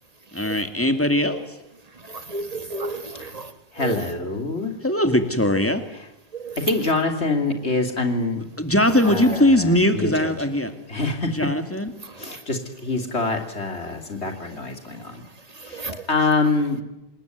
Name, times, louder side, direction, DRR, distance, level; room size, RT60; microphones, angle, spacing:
voice 1, 0.3-1.5 4.8-5.8 8.6-10.7 11.4-11.9, left 1 dB, 10° left, 8 dB, 2.4 m, -20 dB
voice 2, 1.9-4.0 6.3-6.6 12.0-12.4 15.5-16.1, right 3 dB, 35° right, 10 dB, 1.9 m, -34 dB
voice 3, 3.7-4.8 6.6-8.4 9.1-10.3 10.9-11.5 12.2-15.2 15.6-16.8, left 3 dB, 80° left, 5 dB, 3.4 m, -25 dB
27.0 x 20.0 x 9.5 m, 0.93 s
omnidirectional pair, 1.1 m